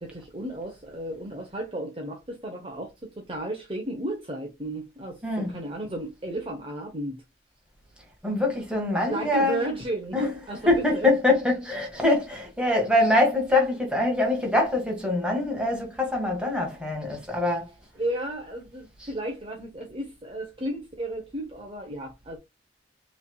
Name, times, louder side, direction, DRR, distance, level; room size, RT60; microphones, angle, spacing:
voice 1, 0.0-7.2 9.0-11.1 17.9-22.4, right 1 dB, 30° right, 0.9 m, -33 dB
voice 2, 5.2-5.5 8.2-9.6 10.1-10.3 10.7-17.7, left 2 dB, 5° right, 1.7 m, -24 dB
5.5 x 3.3 x 2.3 m
head